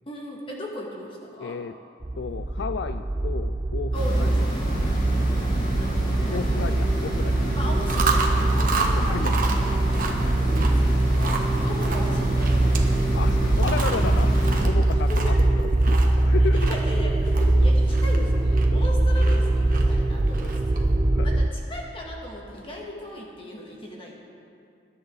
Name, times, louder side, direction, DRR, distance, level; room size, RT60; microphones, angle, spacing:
voice 1, 0.1-1.6 3.9-4.6 5.7-5.9 6.2-6.7 7.6-9.4 10.4-12.9 15.1-15.4 16.5-20.9 21.2-24.2, left 1 dB, 30° left, -2 dB, 2.1 m, -37 dB
voice 2, 1.4-1.8 2.2-4.5 6.3-7.4 8.8-9.4 10.2-10.4 11.1-11.3 13.1-14.3 14.6-16.7 17.5-17.6 18.7-18.9 20.4-20.5 21.1-21.3, left 5 dB, 70° left, 10 dB, 0.3 m, -33 dB
sound 1, 2.0-21.5, right 2 dB, 25° right, 0.4 m, -22 dB
sound 2, 3.9-14.6, equal, 45° left, 3.1 m, -30 dB
Chewing mastication, 7.7-20.9, right 3 dB, 45° right, 1.3 m, -32 dB
21.0 x 10.5 x 4.1 m, 2.4 s
head